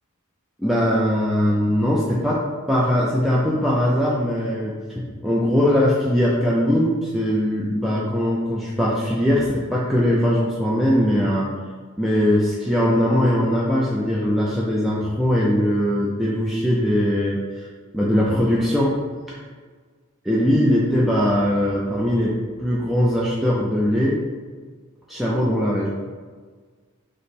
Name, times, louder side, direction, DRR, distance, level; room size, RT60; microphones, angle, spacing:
voice 1, 0.6-11.5 12.0-17.7 17.9-19.0 19.3-19.4 20.2-24.2 25.1-25.9, equal, ahead, -6 dB, 0.4 m, -21 dB
5.1 x 2.0 x 4.1 m, 1.5 s
head